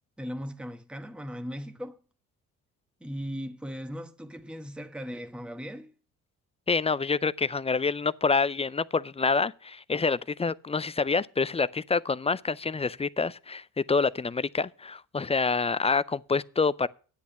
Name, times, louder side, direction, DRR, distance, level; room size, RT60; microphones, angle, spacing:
voice 1, 0.2-2.0 3.0-5.9, equal, 5° right, 1.1 m, -38 dB
voice 2, 6.7-16.9, left 4 dB, 15° left, 0.4 m, -27 dB
10.0 x 8.3 x 5.5 m
supercardioid pair, 60°, 37 cm